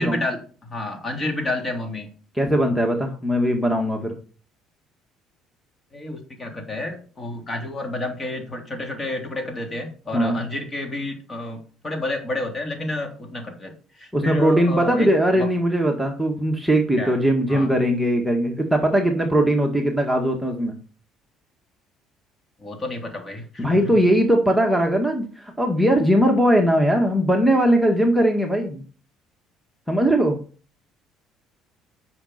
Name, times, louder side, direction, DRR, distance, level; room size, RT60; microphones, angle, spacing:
voice 1, 0.0-2.1 5.9-15.1 15.4-15.5 17.0-17.1 17.5-17.7 22.6-23.9, left 2 dB, 30° left, 3 dB, 3.3 m, -30 dB
voice 2, 2.4-4.1 10.1-10.4 14.1-20.8 23.6-28.8 29.9-30.4, equal, ahead, 1 dB, 1.8 m, -20 dB
10.0 x 6.3 x 4.4 m, 0.39 s
supercardioid pair, 75°, 0 cm